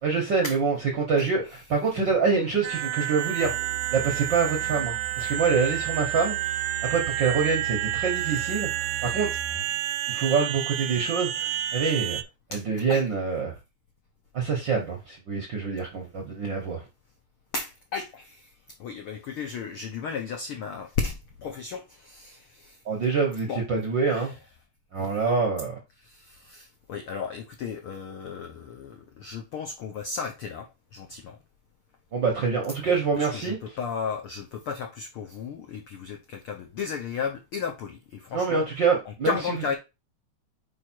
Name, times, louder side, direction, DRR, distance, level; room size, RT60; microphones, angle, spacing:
voice 1, 0.0-1.4 1.7-3.5 3.9-6.4 6.9-9.3 10.1-12.2 12.5-13.5 14.3-16.8 22.9-24.3 24.9-25.7 32.1-33.6 38.3-39.4, right 5 dB, 60° right, 1.2 m, -25 dB
voice 2, 1.2-1.6 12.5-12.6 12.9-13.0 17.5-18.5 18.8-22.8 23.5-23.6 24.1-24.4 25.0-25.2 26.0-31.4 32.9-38.7 39.0-39.8, left 5 dB, 80° left, 1.2 m, -34 dB
sound 1, 2.6-12.2, right 14 dB, 80° right, 1.6 m, -30 dB
Musical instrument, 3.4-9.8, right 9 dB, 50° left, 2.2 m, -40 dB
4.8 x 4.8 x 4.4 m
omnidirectional pair, 3.7 m